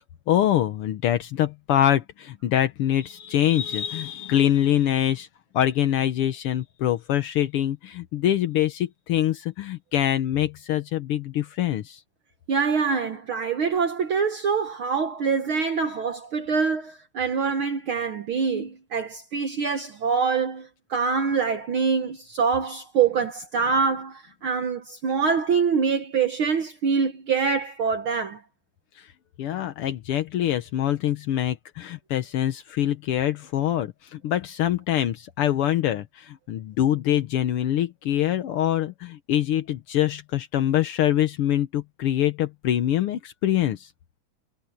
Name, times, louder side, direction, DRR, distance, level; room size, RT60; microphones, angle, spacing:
voice 1, 0.3-5.3 5.5-12.0 29.0-29.1 29.4-43.9, left 11 dB, 75° left, 1.2 m, -24 dB
voice 2, 12.5-28.4, right 5 dB, 60° right, 1.3 m, -25 dB
omnidirectional pair, 3.8 m